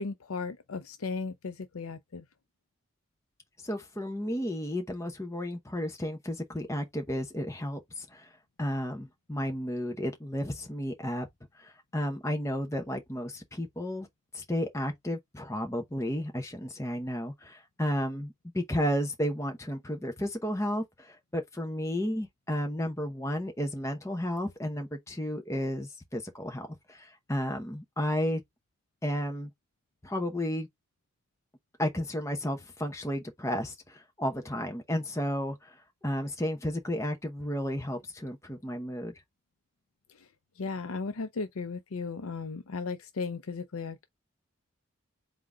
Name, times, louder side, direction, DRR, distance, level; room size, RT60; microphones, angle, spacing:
voice 1, 0.0-2.2 40.6-44.0, left 4 dB, 90° left, 0.6 m, -36 dB
voice 2, 3.6-8.3 8.6-11.3 11.6-14.1 14.3-28.4 29.0-29.5 30.0-30.7 31.8-35.7 36.0-39.1, equal, 15° left, 0.8 m, -33 dB
3.8 x 3.5 x 3.8 m
head